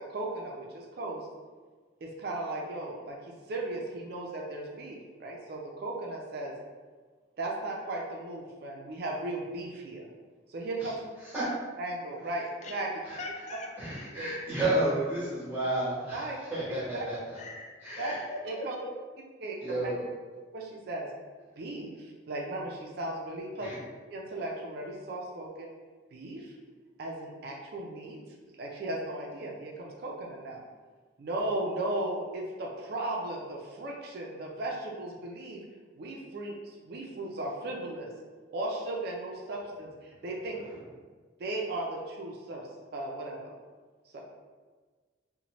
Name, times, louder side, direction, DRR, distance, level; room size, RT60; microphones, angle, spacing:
voice 1, 0.1-1.2 2.0-6.5 7.4-10.1 10.5-11.0 11.8-12.9 14.2-14.3 16.1-16.4 18.0-18.1 18.4-18.8 19.4-19.9 20.5-21.1 21.6-23.7 24.1-25.7 26.1-26.6 27.0-28.2 28.5-30.6 31.2-35.6 36.0-38.1 38.5-40.6 41.4-42.6 42.9-43.5 44.1-44.2, right 2 dB, 55° right, -1 dB, 0.3 m, -36 dB
voice 2, 13.1-13.7 17.3-18.9, left 2 dB, 35° left, 0 dB, 0.3 m, -40 dB
voice 3, 13.8-17.4 17.8-18.2 19.6-20.0 23.6-23.7, right 1 dB, 10° right, -11 dB, 1.1 m, -31 dB
2.7 x 2.1 x 2.9 m, 1.4 s
head